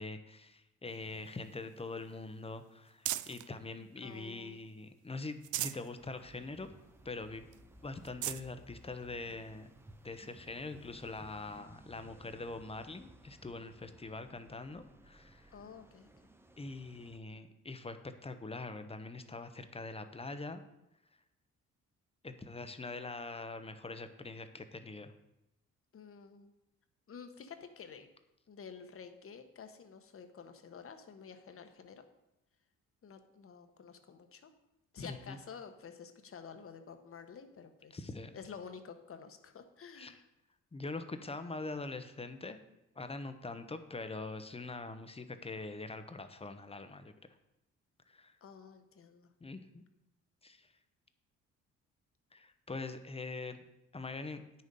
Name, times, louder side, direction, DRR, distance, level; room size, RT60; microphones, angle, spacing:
voice 1, 0.0-6.7 7.0-7.4 7.8-9.7 10.0-15.5 16.6-18.0 18.2-20.6 22.2-25.1 35.0-35.4 37.9-38.3 40.0-40.2 40.7-42.6 43.0-47.1 48.1-48.4 49.4-49.8 50.4-50.7 52.3-53.6 53.9-54.4, left 3 dB, 20° left, 9 dB, 0.9 m, -43 dB
sound 1, 0.9-3.5 4.0-4.8 5.2-5.9 6.4-6.5 6.8-6.9 7.5-7.6 8.0-8.5 9.3-9.4 11.2-11.3, right 14 dB, 75° right, 0.5 m, -41 dB
voice 2, 4.0-4.6 15.5-16.1 25.9-26.5 27.1-28.1 28.5-32.0 33.0-34.5 34.9-38.1 38.3-40.2 48.4-49.3, left 6 dB, 45° left, 8 dB, 1.2 m, -50 dB
sound 2, 6.0-17.2, right 1 dB, 10° right, 0.7 m, -58 dB
9.1 x 6.6 x 5.4 m, 0.90 s
cardioid pair, 90°, 30 cm